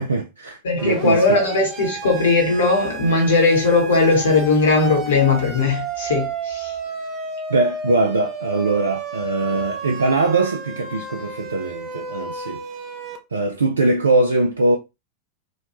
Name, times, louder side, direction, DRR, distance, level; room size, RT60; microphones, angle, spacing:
voice 1, 0.0-1.4 7.5-12.6 13.3-14.8, right 2 dB, 70° right, 0.4 m, -21 dB
voice 2, 0.6-6.7, left 3 dB, 65° left, 0.9 m, -18 dB
Siren, 0.8-13.2, right 4 dB, 30° right, 0.7 m, -32 dB
3.1 x 2.2 x 2.8 m
figure-of-eight pair, 90°, 0 cm